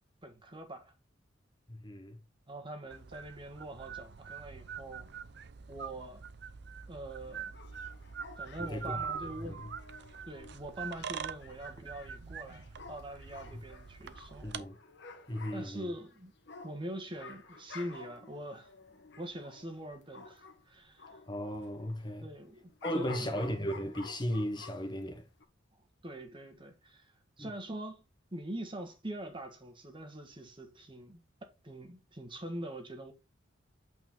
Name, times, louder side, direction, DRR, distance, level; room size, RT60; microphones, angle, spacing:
voice 1, 0.2-0.9 2.5-5.1 5.7-6.3 6.9-7.6 8.4-9.7 10.3-14.7 15.5-16.3 16.6-18.7 19.2-21.2 22.2-23.4 26.0-28.0 28.3-31.2 31.6-33.1, right 1 dB, 25° right, 1.6 m, -43 dB
voice 2, 1.7-2.2 8.6-9.0 9.4-9.6 14.4-14.8 15.3-15.9 21.3-22.3 22.8-25.3 27.4-27.5, equal, 25° left, 1.1 m, -36 dB
sound 1, 2.9-14.6, right 7 dB, 65° right, 0.6 m, -44 dB
sound 2, 7.2-20.6 21.0-25.0 25.4-25.5, left 4 dB, 65° left, 1.3 m, -52 dB
8.4 x 4.6 x 3.9 m
head